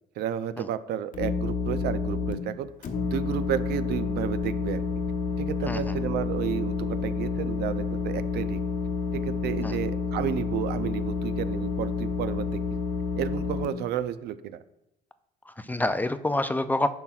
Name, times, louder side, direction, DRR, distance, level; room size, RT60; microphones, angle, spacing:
voice 1, 0.2-2.7 3.0-4.8 5.4-8.6 9.1-12.6 13.2-14.6, right 10 dB, 75° right, 13 dB, 0.5 m, -32 dB
sound 1, 1.1-2.3 2.8-13.6, left 5 dB, 50° left, 1.0 m, -29 dB
voice 2, 15.5-16.9, left 1 dB, 10° left, 11 dB, 0.3 m, -27 dB
11.0 x 5.8 x 2.4 m, 0.86 s
cardioid pair, 110°, 17 cm